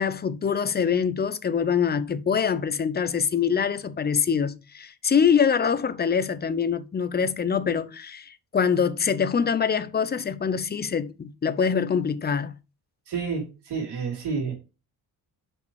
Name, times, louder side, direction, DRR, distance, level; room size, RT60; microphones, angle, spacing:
voice 1, 0.0-12.5, left 6 dB, 25° left, 0.5 m, -24 dB
voice 2, 13.1-14.5, right 5 dB, 85° right, 3.1 m, -29 dB
5.4 x 5.3 x 4.6 m
cardioid pair, 115°, 40 cm